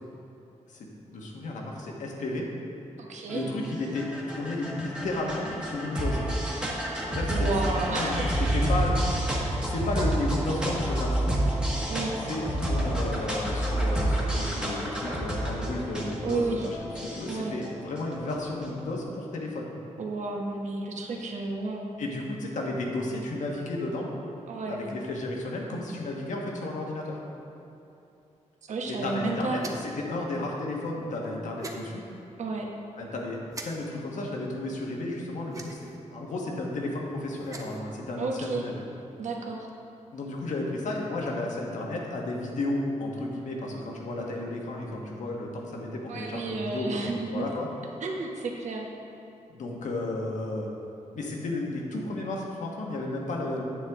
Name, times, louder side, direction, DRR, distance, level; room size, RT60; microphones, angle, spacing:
voice 1, 0.7-2.5 3.3-6.3 7.1-7.5 7.9-9.3 9.6-11.4 12.3-16.8 17.1-19.7 22.0-24.1 24.7-27.2 28.9-32.0 33.0-33.4 33.6-38.8 40.1-47.7 49.5-50.7 51.1-53.6, left 2 dB, 75° left, -1 dB, 1.4 m, -33 dB
voice 2, 3.0-3.5 7.3-8.6 11.9-12.1 16.2-16.7 17.3-17.6 20.0-21.9 24.5-24.8 28.7-29.6 32.4-32.7 38.2-38.6 39.2-39.7 46.1-47.5 48.0-48.9, right 3 dB, 65° right, 0 dB, 1.1 m, -32 dB
sound 1, 3.3-18.8, right 1 dB, 5° right, 1.2 m, -29 dB
sound 2, 29.6-30.0 31.6-31.8 33.5-33.7 35.5-36.0 37.3-37.8, right 3 dB, 25° right, 0.7 m, -40 dB
9.7 x 7.6 x 3.6 m, 2.9 s
wide cardioid pair, 155°, 13 cm